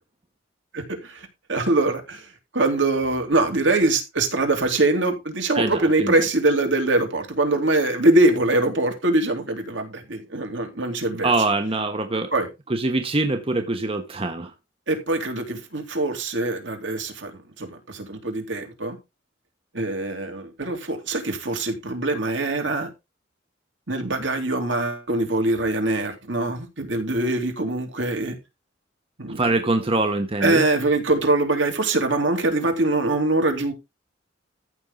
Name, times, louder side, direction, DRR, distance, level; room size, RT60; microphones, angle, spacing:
voice 1, 0.7-11.3 12.3-12.5 14.9-19.0 19.7-22.9 23.9-28.4 29.2-29.5 30.4-33.7, right 2 dB, 70° right, 3.3 m, -23 dB
voice 2, 5.5-6.1 11.2-12.3 12.7-14.5 29.4-30.6, right 2 dB, 30° right, 1.1 m, -23 dB
14.0 x 6.4 x 3.9 m
head